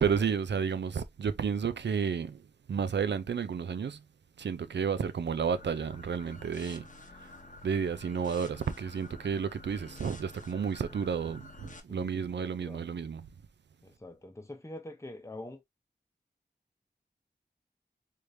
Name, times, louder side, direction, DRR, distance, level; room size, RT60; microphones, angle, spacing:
voice 1, 0.0-2.4 2.7-4.0 4.4-6.9 7.6-13.2, right 6 dB, 80° right, 0.4 m, -31 dB
sound 1, 5.4-11.8, left 2 dB, 45° left, 0.8 m, -50 dB
voice 2, 11.9-12.9 13.8-15.6, left 1 dB, 15° left, 0.7 m, -45 dB
3.3 x 3.3 x 2.5 m
wide cardioid pair, 45°, 18 cm